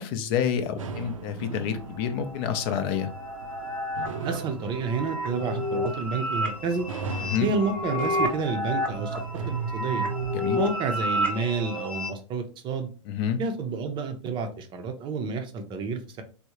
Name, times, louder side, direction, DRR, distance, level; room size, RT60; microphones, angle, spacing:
voice 1, 0.0-3.1 7.2-7.5 10.3-10.6 13.1-13.4, left 8 dB, 45° left, 8 dB, 0.5 m, -28 dB
sound 1, 0.8-10.7, right 5 dB, 80° right, 0.5 m, -37 dB
sound 2, 1.7-12.1, equal, 10° left, 0.7 m, -31 dB
voice 2, 4.2-6.9 7.4-10.1 10.5-12.9 13.4-16.2, right 4 dB, 30° right, 6 dB, 0.5 m, -30 dB
3.5 x 2.1 x 2.9 m, 0.37 s
hypercardioid pair, 105°, 17 cm